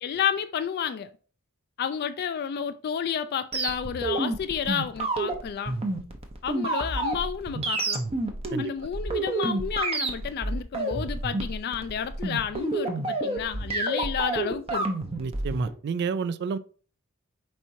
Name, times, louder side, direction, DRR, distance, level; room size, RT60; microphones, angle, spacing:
voice 1, 0.0-1.1 1.8-5.8 6.4-8.0 8.6-14.9, left 7 dB, 50° left, 0.3 m, -31 dB
sound 1, 3.5-15.7, right 2 dB, 30° right, 0.7 m, -29 dB
voice 2, 15.2-16.6, right 5 dB, 55° right, 0.3 m, -30 dB
4.6 x 4.3 x 2.6 m
head